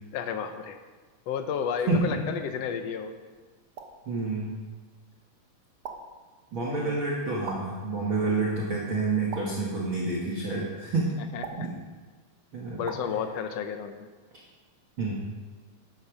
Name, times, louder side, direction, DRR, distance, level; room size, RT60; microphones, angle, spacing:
voice 1, 0.1-0.8 1.3-3.1 6.7-7.0 11.2-11.7 12.8-14.1, left 7 dB, 75° left, 7 dB, 1.5 m, -32 dB
voice 2, 1.9-2.2 4.1-4.6 6.5-11.1 11.6-11.7 12.5-12.8 15.0-15.1, right 3 dB, 45° right, -4 dB, 2.2 m, -28 dB
sound 1, 3.8-4.1 5.8-6.2 7.5-7.9 9.3-9.8 11.4-11.8 12.9-13.2, right 5 dB, 70° right, 1.3 m, -40 dB
12.5 x 12.0 x 5.1 m, 1.4 s
omnidirectional pair, 3.9 m